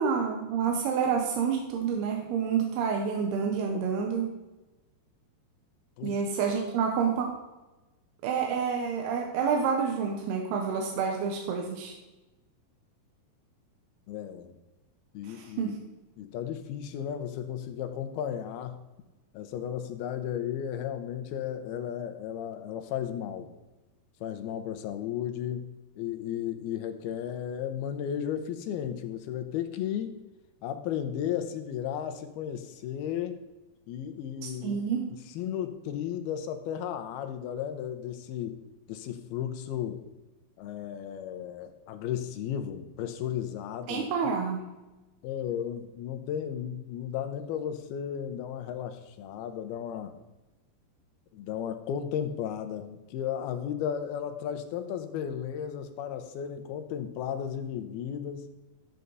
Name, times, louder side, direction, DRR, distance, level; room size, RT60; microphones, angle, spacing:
voice 1, 0.0-4.3 6.0-7.3 8.2-11.9 15.2-15.8 34.4-35.0 43.9-44.7, right 6 dB, 85° right, 2 dB, 3.0 m, -28 dB
voice 2, 14.1-14.5 15.1-15.8 16.2-18.8 19.3-23.5 24.2-25.7 26.0-30.1 30.6-33.4 33.9-34.8 35.3-38.6 38.9-40.0 40.6-44.1 45.2-50.2 51.3-58.5, left 9 dB, 85° left, 8 dB, 2.7 m, -34 dB
12.5 x 8.3 x 4.0 m, 1.1 s
omnidirectional pair, 4.5 m